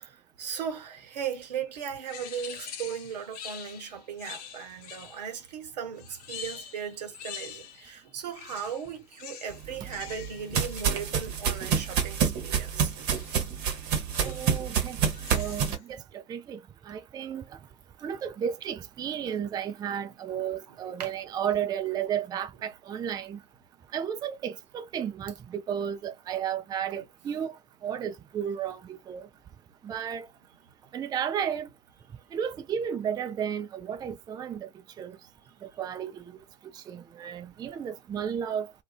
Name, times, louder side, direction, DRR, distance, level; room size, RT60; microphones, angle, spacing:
voice 1, 0.0-13.1 20.0-20.1 20.3-20.4 20.7-21.1 21.4-21.5, right 8 dB, 80° right, 0.8 m, -37 dB
sound 1, 2.0-5.4 6.0-8.0 8.3-12.1 13.1-13.5 14.1-14.6 15.0-15.8, left 8 dB, 65° left, 0.7 m, -45 dB
sound 2, 9.6-15.8, right 7 dB, 50° right, 0.9 m, -28 dB
voice 2, 14.2-15.0 15.3-16.0 16.3-16.6 16.9-17.4 18.0-23.4 23.9-27.5 27.8-28.8 29.1-29.2 29.8-30.3 30.9-31.7 32.3-34.7 35.0-35.2 35.8-36.1 36.9-38.8, right 8 dB, 20° right, 0.3 m, -33 dB
2.4 x 2.2 x 2.3 m
hypercardioid pair, 80°, 21 cm